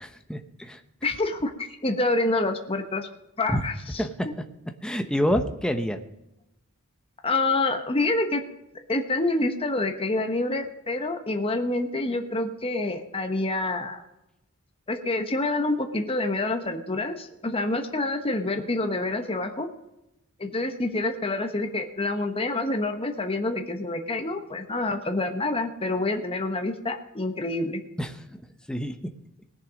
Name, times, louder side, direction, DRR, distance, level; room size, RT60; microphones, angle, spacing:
voice 1, 0.1-0.8 3.5-3.6 4.0-4.1 4.8-6.0 28.0-28.2 28.7-29.1, equal, 5° left, 7 dB, 0.9 m, -27 dB
voice 2, 1.0-3.1 3.4-4.0 7.2-8.4 8.9-14.0 14.9-19.7 20.4-27.8, left 2 dB, 25° left, 6 dB, 1.1 m, -27 dB
19.0 x 6.9 x 5.1 m, 0.91 s
head